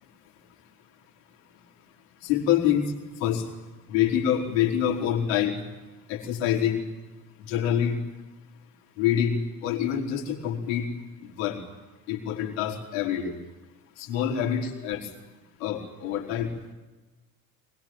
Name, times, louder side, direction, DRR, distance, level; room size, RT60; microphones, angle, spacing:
voice 1, 2.2-2.8 3.2-3.4 3.9-5.6 6.1-6.8 7.4-8.0 9.0-10.9 11.2-11.6 12.1-13.3 14.0-15.1 15.6-16.5, left 9 dB, 60° left, 1 dB, 4.7 m, -26 dB
23.5 x 22.0 x 9.3 m, 1.2 s
figure-of-eight pair, 70°, 45 cm